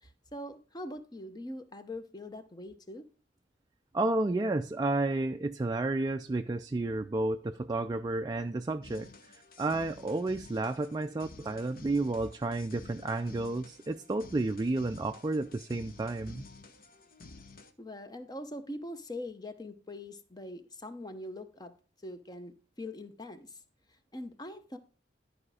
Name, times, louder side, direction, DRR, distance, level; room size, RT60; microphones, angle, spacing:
voice 1, 0.0-3.0 17.8-21.7 22.0-23.6 24.1-24.8, left 1 dB, 20° left, 0.7 m, -42 dB
voice 2, 3.9-16.4, right 2 dB, 20° right, 0.3 m, -31 dB
sound 1, 8.8-17.7, left 3 dB, 50° left, 0.9 m, -52 dB
11.5 x 5.0 x 4.8 m
head